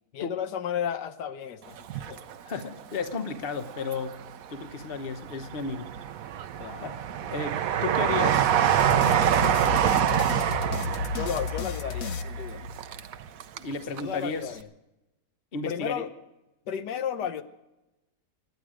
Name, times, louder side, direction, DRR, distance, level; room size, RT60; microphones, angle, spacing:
voice 1, 0.1-2.2 6.6-7.0 7.2-7.3 11.1-12.7 14.0-14.7 15.6-16.1 16.7-17.4, left 8 dB, 85° left, 10 dB, 1.5 m, -33 dB
Train, 1.8-3.0 3.5-4.4 4.9-13.7 14.0-14.1, right 10 dB, 65° right, 1.1 m, -26 dB
voice 2, 2.4-4.2 4.5-5.9 6.8-7.0 7.3-8.5 9.6-9.9 13.6-14.6 15.5-16.1, left 4 dB, 40° left, 9 dB, 1.1 m, -33 dB
sound 1, 8.8-13.1, left 5 dB, 65° left, 1.0 m, -33 dB
25.5 x 10.0 x 4.9 m, 0.99 s
omnidirectional pair, 1.8 m